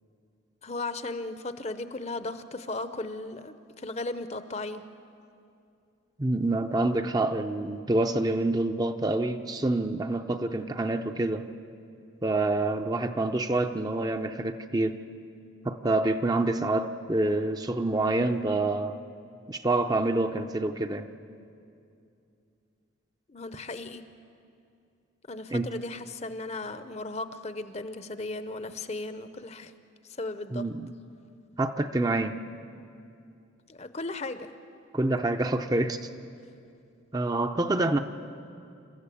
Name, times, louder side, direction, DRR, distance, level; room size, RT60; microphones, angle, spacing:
voice 1, 0.6-4.8 23.3-24.0 25.3-29.7 30.2-30.7 33.7-34.5, left 2 dB, 35° left, 11 dB, 0.8 m, -36 dB
voice 2, 6.2-11.5 12.2-15.0 15.6-19.0 19.5-21.1 25.5-25.7 30.5-30.9 31.6-32.4 34.9-36.1 37.1-38.0, right 2 dB, 20° right, 7 dB, 0.6 m, -27 dB
28.5 x 14.0 x 8.4 m, 2.5 s
head